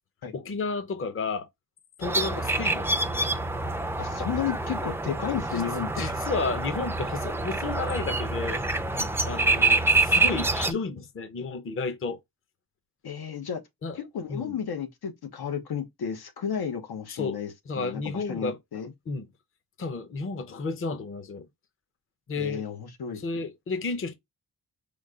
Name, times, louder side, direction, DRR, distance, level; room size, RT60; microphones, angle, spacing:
voice 1, 0.3-1.5 2.0-3.0 6.0-8.6 9.2-12.2 13.8-14.0 14.3-14.6 17.1-17.4 17.7-18.6 19.1-19.3 19.8-21.5 22.3-22.6 23.2-24.1, left 4 dB, 35° left, 0.6 m, -32 dB
sound 1, 2.0-10.7, right 2 dB, 5° right, 0.3 m, -26 dB
voice 2, 4.0-6.1 8.9-9.1 13.0-13.6 13.9-18.9 22.4-23.2, left 8 dB, 90° left, 1.1 m, -33 dB
5.1 x 2.2 x 3.6 m
wide cardioid pair, 175°, 37 cm